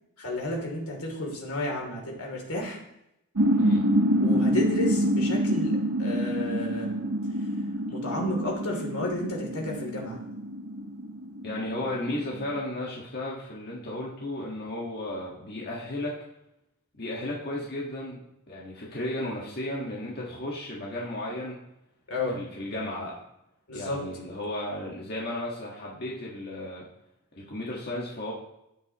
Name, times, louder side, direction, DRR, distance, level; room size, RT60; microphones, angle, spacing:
voice 1, 0.2-2.8 4.2-6.9 7.9-10.2 22.1-22.4 23.7-24.0, left 1 dB, 85° left, 0 dB, 2.9 m, -32 dB
sound 1, 3.4-12.6, equal, 80° right, 1.0 m, -27 dB
voice 2, 3.6-3.9 11.4-16.2 16.9-21.6 22.3-23.2 23.7-26.9 27.4-28.3, left 1 dB, 45° left, -4 dB, 1.6 m, -34 dB
12.5 x 9.3 x 3.0 m, 0.83 s
head